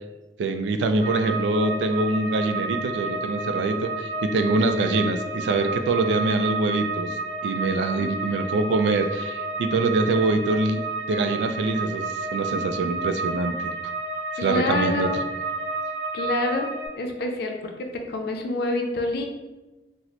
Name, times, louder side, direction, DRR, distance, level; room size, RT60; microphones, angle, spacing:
voice 1, 0.4-10.8 11.1-13.7 14.4-15.1, right 3 dB, 80° right, 8 dB, 0.3 m, -24 dB
sound 1, 1.0-16.9, right 3 dB, 35° right, 0.6 m, -31 dB
voice 2, 14.4-15.2 16.1-16.7 16.9-19.2, left 2 dB, 65° left, 3 dB, 0.5 m, -27 dB
4.0 x 2.0 x 3.0 m, 1.1 s
head